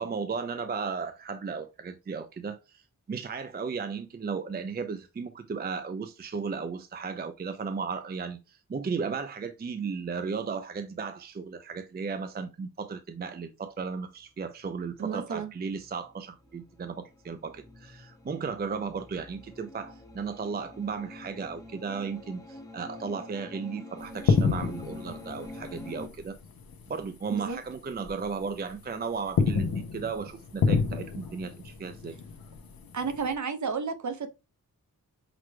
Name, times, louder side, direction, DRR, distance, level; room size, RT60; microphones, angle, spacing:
voice 1, 0.0-2.8 3.1-26.4 26.9-32.1, right 5 dB, 30° right, 0.4 m, -35 dB
voice 2, 15.0-15.5 27.3-27.6 32.9-34.3, right 5 dB, 55° right, 0.8 m, -32 dB
sound 1, 15.7-26.1, left 1 dB, 10° left, 0.8 m, -46 dB
sound 2, 24.0-27.0 27.3-27.5 28.0-28.8 29.1-33.3, left 5 dB, 80° left, 0.8 m, -29 dB
5.8 x 3.1 x 2.2 m
wide cardioid pair, 135°, 35 cm